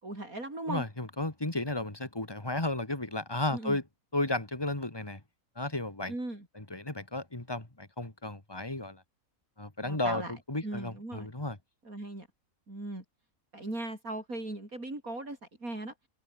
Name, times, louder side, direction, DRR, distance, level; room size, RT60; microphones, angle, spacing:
voice 1, 0.0-0.8 3.5-3.8 6.1-6.5 9.8-10.3 10.6-11.3 11.8-12.3 12.7-13.0 13.5-15.9, right 2 dB, 80° right, 7.7 m, -38 dB
voice 2, 0.6-3.8 4.1-5.2 5.6-6.1 6.5-9.0 9.6-11.6, left 2 dB, 15° left, 2.5 m, -33 dB
open air
omnidirectional pair, 1.5 m